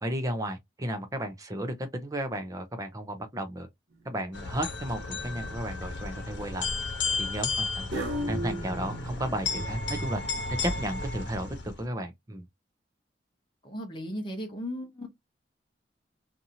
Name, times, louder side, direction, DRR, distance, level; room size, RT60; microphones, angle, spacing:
voice 1, 0.0-3.7 4.0-6.7 7.2-7.9 8.3-10.2 10.6-12.4, right 1 dB, 20° right, 0.5 m, -33 dB
sound 1, 4.0-4.5 5.1-5.6 7.9-9.8, equal, 90° right, 1.2 m, -37 dB
sound 2, 4.3-11.8, left 3 dB, 75° left, 0.9 m, -33 dB
voice 2, 13.6-15.1, equal, 25° left, 0.9 m, -36 dB
2.8 x 2.4 x 2.7 m
head